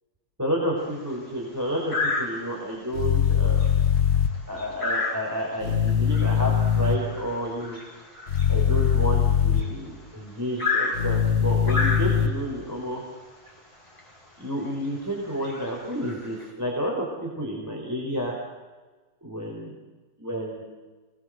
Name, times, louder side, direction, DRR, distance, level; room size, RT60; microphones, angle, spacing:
voice 1, 0.4-3.7 4.5-7.8 8.5-13.0 14.4-18.3 19.2-19.7 20.2-20.7, equal, 10° right, -2 dB, 4.5 m, -30 dB
sound 1, 0.8-1.1 1.9-2.7 3.1-3.3 3.6-9.9 10.6-12.5 13.5-13.6 14.0-14.1 14.7-14.9 15.3-16.5, left 3 dB, 15° left, 6.2 m, -31 dB
sound 2, 2.9-4.3 5.6-6.9 8.3-9.6 10.9-12.3, left 8 dB, 40° left, 1.8 m, -21 dB
26.5 x 20.0 x 7.8 m, 1.3 s
omnidirectional pair, 2.0 m